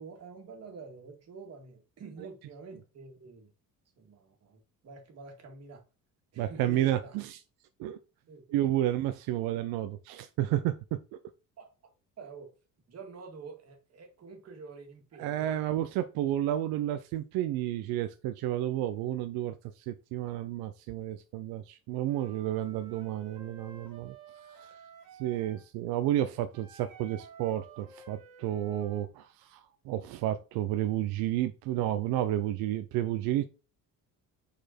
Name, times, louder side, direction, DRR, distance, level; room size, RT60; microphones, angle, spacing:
voice 1, 0.0-3.5 4.0-5.8 6.3-7.2 8.3-8.9 11.6-12.5 12.9-15.6, right 4 dB, 45° right, 1.9 m, -48 dB
voice 2, 6.4-7.4 7.8-8.0 8.5-11.0 15.2-24.1 24.5-24.7 25.2-33.4, right 13 dB, 85° right, 0.6 m, -31 dB
Wind instrument woodwind instrument, 22.0-25.7 26.5-29.1, right 6 dB, 65° right, 1.9 m, -52 dB
5.0 x 4.4 x 4.3 m
cardioid pair, 125°, 35 cm